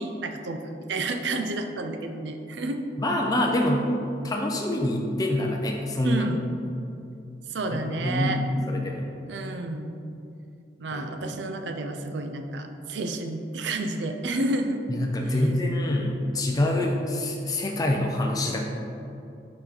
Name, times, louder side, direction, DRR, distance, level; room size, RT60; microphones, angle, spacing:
voice 1, 0.0-2.8 6.0-6.4 7.5-8.4 9.3-9.9 10.8-14.8 15.2-15.3, right 2 dB, 85° right, 6 dB, 0.5 m, -30 dB
voice 2, 3.0-3.9 4.2-6.3 7.7-8.4 8.7-9.1 10.9-11.4 14.9-18.6, left 1 dB, 20° left, 0 dB, 0.5 m, -26 dB
5.7 x 5.1 x 4.0 m, 2.6 s
head